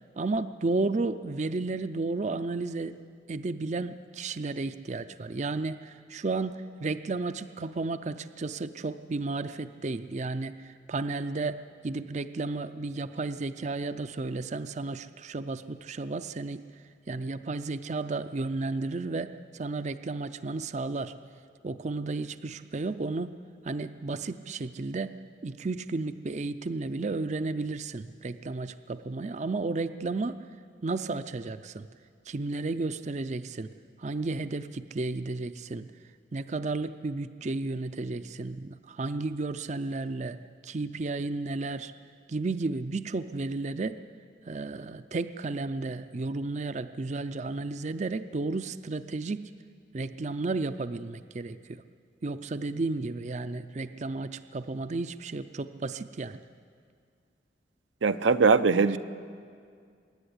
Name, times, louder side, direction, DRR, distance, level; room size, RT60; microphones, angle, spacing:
voice 1, 0.2-3.0 3.3-16.6 17.1-21.1 21.6-23.4 23.6-25.2 25.4-30.4 30.8-31.9 32.3-33.7 34.0-35.9 36.3-40.4 40.6-41.9 42.3-44.0 44.5-49.5 49.9-51.8 52.2-56.4, right 3 dB, 40° right, 11 dB, 0.5 m, -33 dB
voice 2, 58.0-59.0, right 4 dB, 90° right, 10 dB, 0.7 m, -21 dB
24.5 x 11.0 x 10.0 m, 2.2 s
head